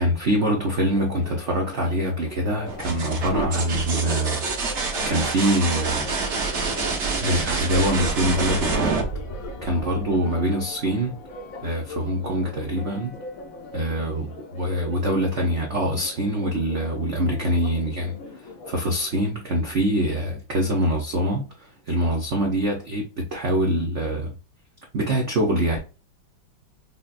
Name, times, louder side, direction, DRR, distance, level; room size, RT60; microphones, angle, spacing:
voice 1, 0.0-4.4 5.1-6.1 7.2-9.0 9.6-11.2 11.6-13.2 13.7-18.2 18.4-24.3 24.9-25.8, right 1 dB, 85° right, 0.6 m, -24 dB
Church bell, 0.9-19.3, left 3 dB, 80° left, 0.7 m, -40 dB
sound 1, 2.7-10.2 12.0-12.6, right 3 dB, 45° right, 0.9 m, -27 dB
5.5 x 2.1 x 2.5 m
omnidirectional pair, 2.4 m